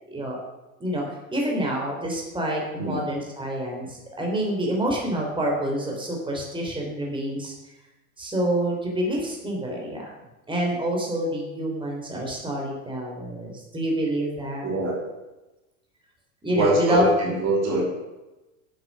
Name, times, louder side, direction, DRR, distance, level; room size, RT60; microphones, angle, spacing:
voice 1, 0.8-7.5 8.2-10.0 10.5-14.7 16.4-17.1, equal, 10° right, -1 dB, 3.5 m, -27 dB
voice 2, 14.6-15.0 16.5-17.8, right 2 dB, 35° right, -2 dB, 3.1 m, -23 dB
8.8 x 7.8 x 6.2 m, 1.0 s
hypercardioid pair, 105°, 43 cm